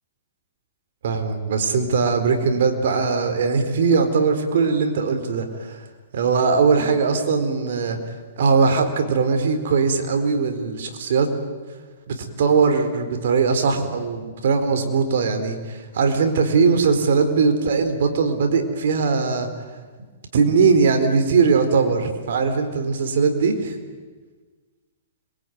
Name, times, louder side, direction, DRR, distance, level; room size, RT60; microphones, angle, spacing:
voice 1, 1.0-5.9 6.1-8.0 8.4-11.3 12.1-19.6 20.3-23.8, right 5 dB, 70° right, 7 dB, 4.3 m, -20 dB
26.5 x 22.5 x 9.5 m, 1.4 s
hypercardioid pair, 140°, 0 cm